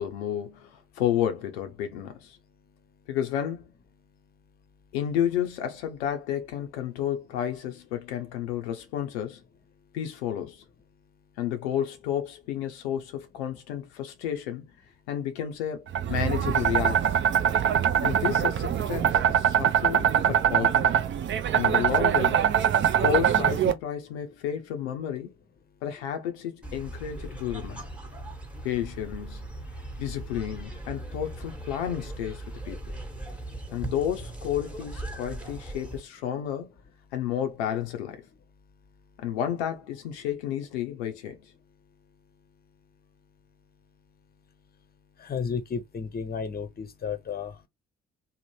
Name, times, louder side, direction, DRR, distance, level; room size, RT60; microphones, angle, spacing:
voice 1, 0.0-2.4 3.1-3.7 4.9-9.4 9.9-10.6 11.4-14.7 15.1-15.8 16.1-17.1 18.0-20.9 21.5-22.5 23.0-25.3 25.8-27.8 28.6-29.4 30.0-32.8 33.7-36.7 37.1-38.2 39.2-41.4, left 10 dB, 85° left, 0.5 m, -31 dB
sound 1, 15.9-23.7, right 9 dB, 35° right, 0.5 m, -23 dB
sound 2, 26.6-36.0, right 1 dB, 5° right, 1.0 m, -39 dB
voice 2, 45.2-47.5, left 6 dB, 30° left, 0.7 m, -32 dB
2.7 x 2.1 x 3.0 m
hypercardioid pair, 45°, 32 cm